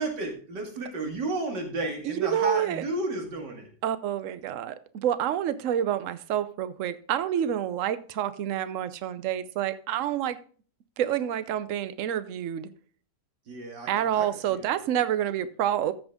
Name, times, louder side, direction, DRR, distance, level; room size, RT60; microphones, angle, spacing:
voice 1, 0.0-3.7 13.5-14.7, right 2 dB, 80° right, 2.8 m, -32 dB
voice 2, 2.0-2.8 3.8-10.4 11.0-12.7 13.9-15.9, right 10 dB, 60° right, 1.0 m, -28 dB
14.0 x 6.2 x 3.7 m
omnidirectional pair, 1.8 m